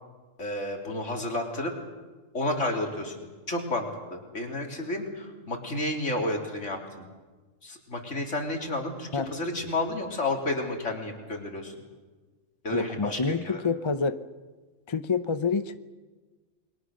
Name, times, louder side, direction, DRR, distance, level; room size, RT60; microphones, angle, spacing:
voice 1, 0.4-1.7 2.3-7.1 7.6-11.7 12.6-13.6, left 2 dB, 65° left, 2 dB, 3.7 m, -31 dB
voice 2, 12.7-14.2 14.9-15.8, left 4 dB, 30° left, 11 dB, 0.6 m, -27 dB
28.5 x 22.5 x 6.5 m, 1.3 s
omnidirectional pair, 1.3 m